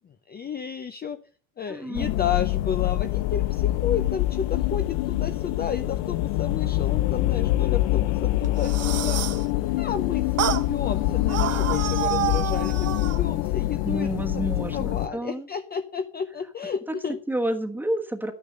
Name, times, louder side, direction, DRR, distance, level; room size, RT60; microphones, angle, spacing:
voice 1, 0.3-1.2 1.6-9.2 9.8-17.2, left 7 dB, 20° left, 9 dB, 0.7 m, -32 dB
voice 2, 1.7-2.1 10.9-11.1 13.8-15.5 16.9-17.0 17.3-18.3, right 1 dB, 5° right, 5 dB, 1.3 m, -29 dB
sound 1, 2.0-15.1, left 16 dB, 80° left, 0.9 m, -25 dB
sound 2, 8.4-9.4 10.4-10.7 11.3-13.2, right 11 dB, 35° right, 1.1 m, -28 dB
11.5 x 10.0 x 5.3 m, 0.40 s
cardioid pair, 155°, 45 cm